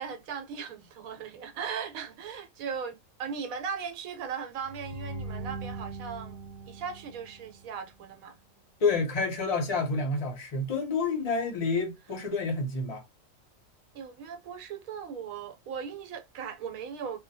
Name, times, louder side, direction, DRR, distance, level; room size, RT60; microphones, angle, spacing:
voice 1, 0.0-6.4 6.7-8.3 11.3-11.5 13.9-17.2, right 6 dB, 90° right, 1.1 m, -38 dB
sound 1, 4.6-7.8, right 2 dB, ahead, 0.7 m, -41 dB
voice 2, 8.8-13.0, left 4 dB, 45° left, 0.5 m, -29 dB
2.2 x 2.1 x 2.6 m
omnidirectional pair, 1.4 m